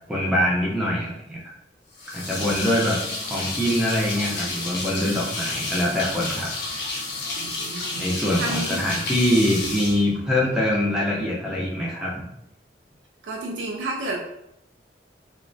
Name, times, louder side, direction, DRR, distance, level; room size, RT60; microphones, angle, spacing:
voice 1, 0.1-1.4 2.1-3.0 3.2-6.5 6.9-7.0 8.0-12.2, left 1 dB, 5° right, -5 dB, 0.5 m, -24 dB
sound 1, 1.9-10.7, left 2 dB, 65° left, 0.6 m, -31 dB
voice 2, 2.4-2.7 7.4-8.1 8.4-8.8 13.2-14.2, right 2 dB, 90° right, 0 dB, 0.3 m, -31 dB
2.3 x 2.1 x 2.5 m, 0.83 s
head